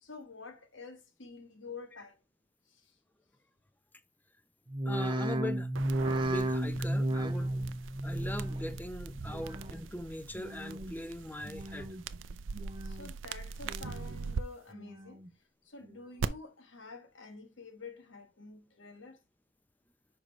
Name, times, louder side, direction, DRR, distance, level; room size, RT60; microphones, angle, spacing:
voice 1, 0.0-2.2 12.8-15.2 15.7-19.2, left 4 dB, 80° left, 1.4 m, -48 dB
sound 1, 4.7-10.0 10.3-10.9 11.4-12.1 12.5-13.2 13.6-14.3 14.7-15.3 15.8-15.9, right 1 dB, 25° right, 0.7 m, -34 dB
voice 2, 4.9-5.7 6.2-7.5 8.0-12.0, left 1 dB, 10° left, 0.6 m, -40 dB
sound 2, 5.7-14.4 16.2-16.3, right 5 dB, 85° right, 0.5 m, -42 dB
6.5 x 5.2 x 3.2 m
head